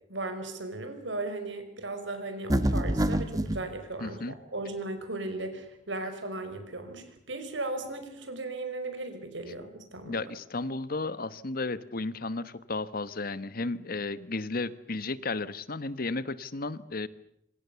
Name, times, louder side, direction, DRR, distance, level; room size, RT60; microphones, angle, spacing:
voice 1, 0.1-10.2, right 2 dB, 85° right, 8 dB, 5.3 m, -36 dB
sound 1, 2.5-3.6, right 1 dB, 20° right, 1.7 m, -26 dB
voice 2, 4.0-4.3 10.1-17.1, left 3 dB, 55° left, 15 dB, 1.2 m, -33 dB
27.5 x 25.5 x 7.0 m, 0.72 s
head